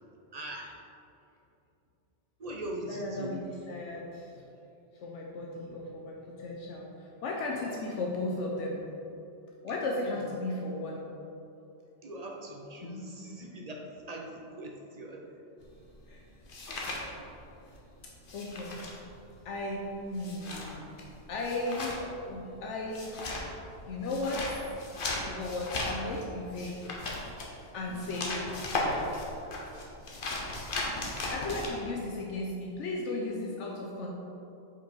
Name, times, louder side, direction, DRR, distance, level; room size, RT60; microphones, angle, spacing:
voice 1, 0.3-0.7 2.4-3.4 12.0-15.3 17.2-17.3 27.9-28.1, right 1 dB, 40° right, 0 dB, 0.6 m, -41 dB
voice 2, 2.9-4.5 5.0-9.1 9.6-11.1 12.8-13.0 16.1-16.2 18.3-18.8 19.4-23.6 23.9-24.5 25.2-26.9 27.3-27.4 27.7-29.1 31.3-34.1, left 2 dB, 80° left, -1 dB, 1.0 m, -36 dB
sound 1, 15.6-17.8 18.0-31.7, left 2 dB, 50° left, 1.0 m, -37 dB
5.3 x 5.0 x 4.5 m, 2.8 s
omnidirectional pair, 1.2 m